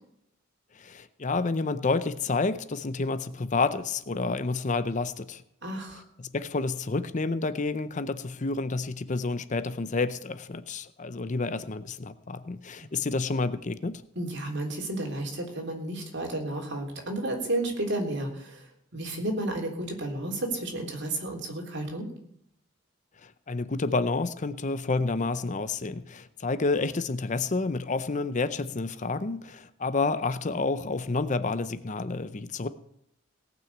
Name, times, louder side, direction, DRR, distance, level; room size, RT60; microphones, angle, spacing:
voice 1, 0.7-5.4 6.3-14.0 23.2-32.7, left 3 dB, 35° left, 14 dB, 0.6 m, -29 dB
voice 2, 5.6-6.0 12.8-12.9 14.2-22.1, right 1 dB, 55° right, 2 dB, 3.5 m, -32 dB
18.0 x 6.2 x 8.5 m, 0.75 s
head